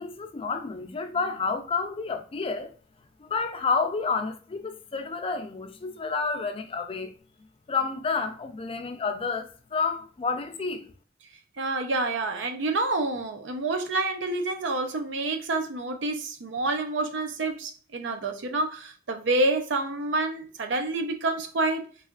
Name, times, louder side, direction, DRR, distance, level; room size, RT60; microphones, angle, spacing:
voice 1, 0.0-2.7 3.2-7.1 7.7-10.9, left 4 dB, 30° left, 0.4 m, -30 dB
voice 2, 11.6-21.9, right 2 dB, 80° right, 0.6 m, -28 dB
3.5 x 3.2 x 2.4 m
head